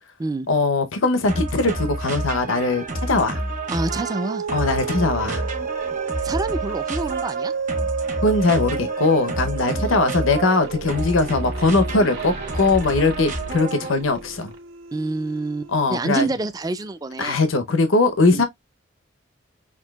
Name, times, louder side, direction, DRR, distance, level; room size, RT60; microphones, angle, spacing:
voice 1, 0.5-3.4 4.5-5.4 8.2-14.5 15.7-16.3 17.2-18.5, left 3 dB, 85° left, 0.7 m, -20 dB
sound 1, 1.3-14.0, right 2 dB, 40° right, 1.0 m, -30 dB
sound 2, 3.6-16.4, right 6 dB, 80° right, 0.5 m, -32 dB
voice 2, 3.7-4.4 6.2-7.5 9.7-10.0 14.9-17.4 18.3-18.4, right 2 dB, 20° right, 0.4 m, -27 dB
sound 3, 10.5-15.0, right 2 dB, 55° right, 1.3 m, -39 dB
6.0 x 2.7 x 2.2 m
head